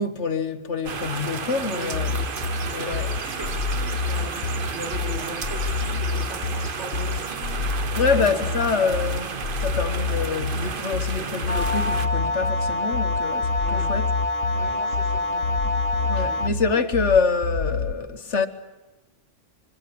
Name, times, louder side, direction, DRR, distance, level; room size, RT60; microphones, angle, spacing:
voice 1, 0.0-2.1 2.6-3.1 7.9-14.1 15.3-15.4 16.1-18.5, left 4 dB, 65° left, 1.7 m, -26 dB
sound 1, 0.8-12.1, right 5 dB, 45° right, 1.2 m, -32 dB
voice 2, 1.6-2.3 2.8-8.6 13.6-13.9 14.5-15.5 15.9-16.4, equal, 65° right, 7.8 m, -39 dB
sound 2, 1.9-17.9, left 5 dB, 85° left, 1.5 m, -28 dB
sound 3, 11.5-16.5, left 2 dB, 30° left, 1.2 m, -26 dB
25.0 x 24.0 x 8.7 m
omnidirectional pair, 1.3 m